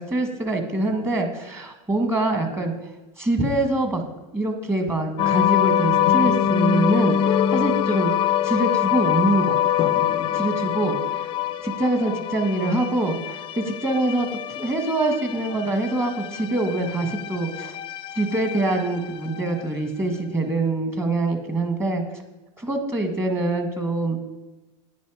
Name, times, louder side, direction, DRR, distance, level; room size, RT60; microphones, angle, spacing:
voice 1, 0.0-2.7 3.2-4.0 4.3-10.1 10.3-11.0 11.6-17.8 18.1-22.0 22.6-24.2, right 2 dB, 15° right, 6 dB, 1.6 m, -24 dB
sound 1, 5.2-19.7, left 10 dB, 30° left, 0.5 m, -24 dB
10.0 x 9.5 x 4.9 m, 1.1 s
supercardioid pair, 130°, 16 cm